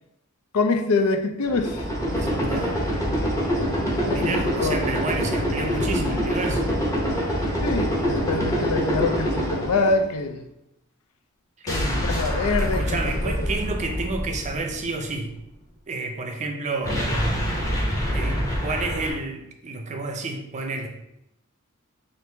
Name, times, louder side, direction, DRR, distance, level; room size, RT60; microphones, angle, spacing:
voice 1, 0.5-1.8 4.1-4.8 7.6-10.4 11.6-13.3, left 3 dB, 80° left, 6 dB, 0.5 m, -25 dB
sound 1, 1.4-10.2 11.7-15.0 16.8-19.1, equal, 15° left, 0.9 m, -25 dB
voice 2, 2.2-2.7 4.1-6.6 11.6-11.7 12.6-15.3 15.9-17.5 18.1-20.9, right 3 dB, 35° right, 4 dB, 0.5 m, -30 dB
4.5 x 2.6 x 3.3 m, 0.83 s
head